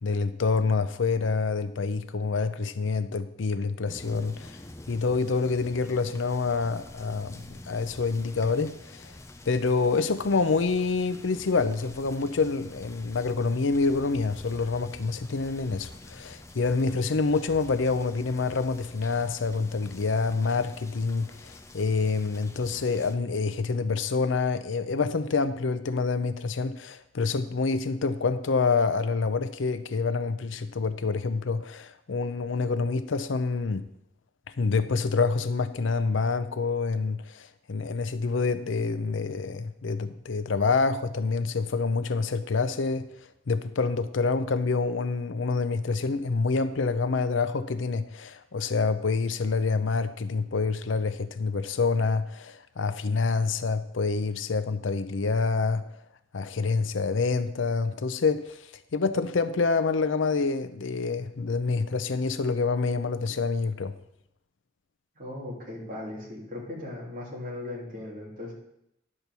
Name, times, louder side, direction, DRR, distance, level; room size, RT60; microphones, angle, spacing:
voice 1, 0.0-4.6 4.9-9.1 9.5-33.8 34.6-43.1 43.5-55.9 56.3-58.6 58.9-63.9, left 4 dB, 75° left, 0.6 m, -27 dB
sound 1, 3.9-23.1, left 2 dB, 15° left, 0.6 m, -47 dB
voice 2, 65.1-68.5, left 2 dB, 45° right, 3.2 m, -38 dB
11.0 x 4.5 x 6.8 m
head